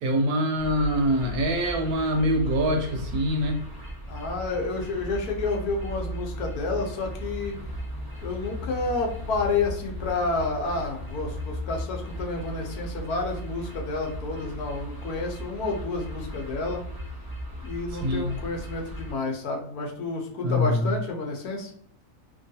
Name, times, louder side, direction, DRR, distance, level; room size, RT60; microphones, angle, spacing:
voice 1, 0.0-3.6 18.0-18.4 20.4-20.9, equal, 75° right, 4 dB, 1.1 m, -24 dB
sound 1, 0.6-19.1, equal, 25° right, 0.4 m, -36 dB
voice 2, 4.1-7.6 8.2-16.8 17.6-21.7, left 3 dB, 75° left, 1 dB, 1.2 m, -30 dB
3.0 x 2.3 x 2.7 m, 0.65 s
omnidirectional pair, 1.6 m